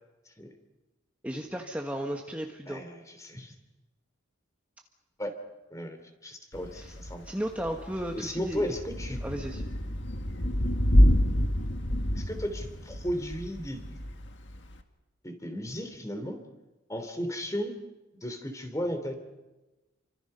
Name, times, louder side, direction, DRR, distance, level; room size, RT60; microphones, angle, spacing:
voice 1, 1.2-2.8 6.8-6.9 7.2-8.7 9.2-9.6, equal, 5° right, 1 dB, 1.3 m, -34 dB
voice 2, 2.7-3.5 5.2-5.3 5.7-7.3 8.1-9.2 12.1-14.0 15.2-16.5 16.9-17.8 18.1-19.1, equal, 15° left, 7 dB, 2.9 m, -35 dB
Thunder / Rain, 6.5-14.8, equal, 60° left, 1.8 m, -28 dB
29.5 x 25.5 x 5.5 m, 1.1 s
head